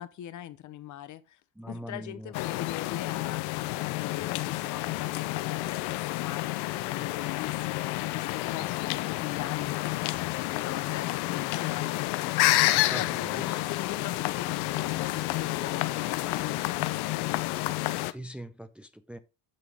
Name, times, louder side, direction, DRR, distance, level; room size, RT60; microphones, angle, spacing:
voice 1, 0.0-1.4 1.7-12.1 12.9-17.2, left 13 dB, 50° left, 0.9 m, -40 dB
voice 2, 1.6-2.3 8.5-8.7 9.1-9.2 12.7-13.0 13.3-13.6 18.1-19.2, equal, 5° right, 0.5 m, -42 dB
sound 1, 2.3-18.1, left 18 dB, 75° left, 0.7 m, -29 dB
9.2 x 6.0 x 3.5 m
cardioid pair, 125°, 39 cm